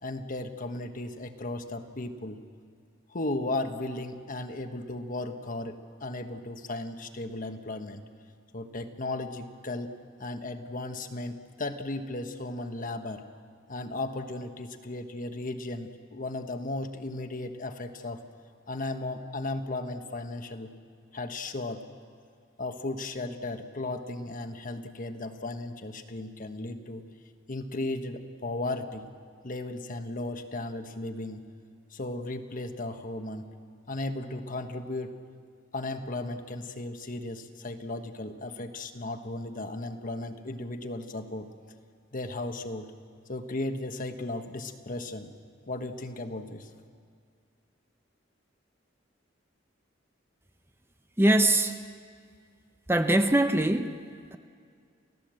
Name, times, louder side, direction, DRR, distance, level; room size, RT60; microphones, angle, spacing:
voice 1, 0.0-2.4 3.1-8.0 8.5-9.9 10.2-13.2 13.7-18.2 18.7-20.7 21.1-21.8 22.6-27.0 27.5-29.1 29.4-31.4 31.9-33.5 33.9-35.2 35.7-41.5 42.1-42.9 43.3-45.3 45.7-46.7, left 2 dB, 45° left, 7 dB, 1.3 m, -35 dB
voice 2, 51.2-51.8 52.9-54.0 54.3-54.4, right 1 dB, 10° right, 7 dB, 0.8 m, -22 dB
29.5 x 15.5 x 7.7 m, 2.1 s
head